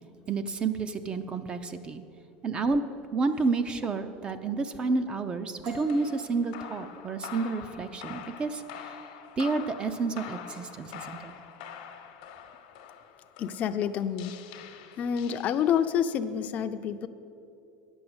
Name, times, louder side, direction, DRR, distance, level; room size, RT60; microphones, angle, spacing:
voice 1, 0.3-2.0 2.4-2.8 3.1-9.0 9.4-11.3, right 4 dB, 25° right, 10 dB, 0.4 m, -30 dB
sound 1, 5.6-13.3, right 3 dB, 80° right, 2.2 m, -50 dB
sound 2, 5.9-16.0, left 8 dB, 80° left, 0.9 m, -45 dB
voice 2, 13.4-14.3 15.0-17.1, left 8 dB, 40° left, 9 dB, 0.4 m, -28 dB
9.5 x 6.2 x 7.9 m, 2.7 s
supercardioid pair, 145°, 4 cm